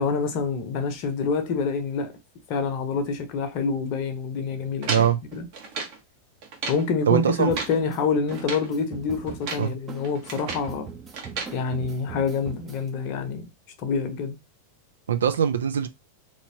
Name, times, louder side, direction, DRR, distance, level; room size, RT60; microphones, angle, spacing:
voice 1, 0.0-2.1 2.5-5.5 6.7-10.9 11.5-13.5 13.8-14.4, left 5 dB, 45° left, 0.8 m, -27 dB
sound 1, 4.8-6.0 6.4-6.9 7.3-7.8 8.3-8.7 9.3-9.7 10.0-10.7 11.1-11.6, right 4 dB, 45° right, 1.1 m, -34 dB
voice 2, 4.9-5.2 7.1-7.5 9.6-9.7 15.1-15.9, right 8 dB, 65° right, 0.4 m, -21 dB
sound 2, 7.4-12.9, right 6 dB, 20° right, 0.7 m, -41 dB
3.2 x 2.8 x 2.7 m
figure-of-eight pair, 90°, 0 cm